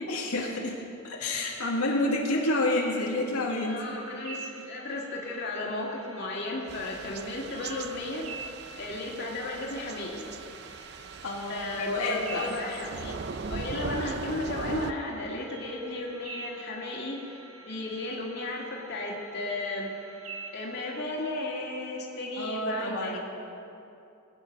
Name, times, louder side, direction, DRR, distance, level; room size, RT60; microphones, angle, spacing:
voice 1, 0.1-3.9 11.2-12.6 22.4-23.2, left 2 dB, 85° left, -2 dB, 1.9 m, -29 dB
sound 1, 1.4-21.0, right 4 dB, 70° right, 1.4 m, -47 dB
voice 2, 3.7-8.3 8.8-10.2 11.5-13.1 13.5-17.2 17.7-19.9 20.5-23.2, left 2 dB, 50° left, -2 dB, 2.2 m, -34 dB
Thunder / Rain, 6.7-14.9, right 4 dB, 50° right, 0.5 m, -39 dB
21.0 x 9.1 x 5.4 m, 2.8 s
head